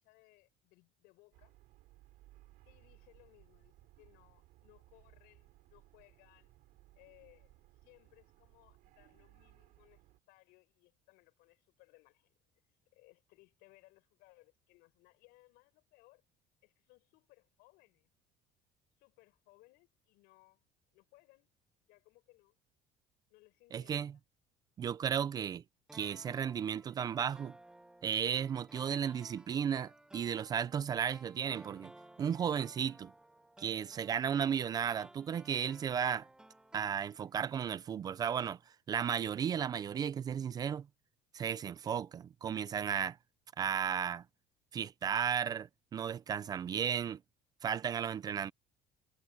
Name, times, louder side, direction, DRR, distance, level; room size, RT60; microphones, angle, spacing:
voice 1, 0.0-1.6 2.7-6.6 6.9-7.5 7.8-12.3 12.9-16.2 16.6-18.1 19.0-20.6 20.9-21.5 21.8-22.6 23.3-24.1, left 23 dB, 90° left, 7.3 m, -65 dB
sound 1, 1.3-10.2, right 17 dB, 65° right, 6.0 m, -63 dB
voice 2, 23.7-24.1 24.8-25.6 25.9-27.5 28.0-31.9 32.2-33.1 33.6-36.3 36.7-38.6 38.9-40.9 41.3-43.2 43.6-44.2 44.7-47.2 47.6-48.5, right 8 dB, 25° right, 0.4 m, -34 dB
sound 2, 25.9-37.5 37.8-37.9, right 1 dB, 5° right, 1.1 m, -58 dB
cardioid pair, 180°, 16 cm